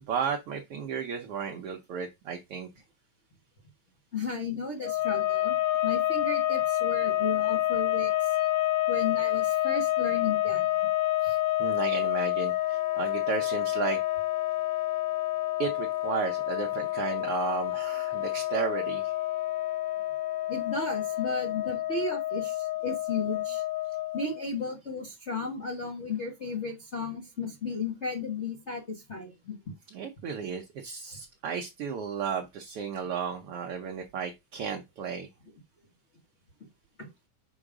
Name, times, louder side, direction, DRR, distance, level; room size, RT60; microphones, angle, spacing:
voice 1, 0.1-2.7 11.2-14.0 15.6-19.1 29.9-35.3, right 7 dB, 65° right, 1.5 m, -34 dB
voice 2, 4.1-8.4 8.9-10.9 20.5-23.6 24.1-29.6 37.0-37.1, left 4 dB, 60° left, 0.7 m, -34 dB
sound 1, 4.8-24.5, left 15 dB, 80° left, 1.6 m, -28 dB
6.3 x 5.0 x 4.9 m
omnidirectional pair, 3.6 m